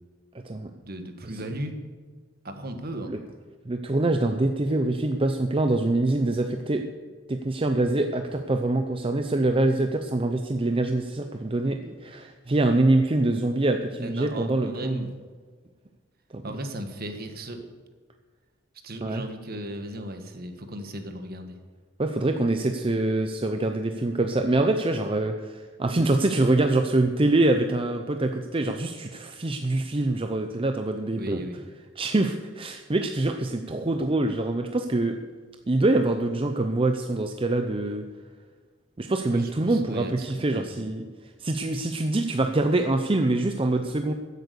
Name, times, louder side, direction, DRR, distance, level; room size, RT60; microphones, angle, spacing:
voice 1, 0.8-1.8 2.4-3.2 14.0-15.2 16.4-17.7 18.8-21.6 31.2-31.6 39.2-40.9, right 1 dB, 50° right, 6 dB, 1.5 m, -36 dB
voice 2, 3.7-6.8 7.3-15.1 16.3-16.4 19.0-19.2 22.0-31.4 32.0-35.2 35.7-38.0 39.0-41.1 41.4-44.1, right 2 dB, 30° right, 6 dB, 0.6 m, -25 dB
14.5 x 8.3 x 6.8 m, 1.5 s
head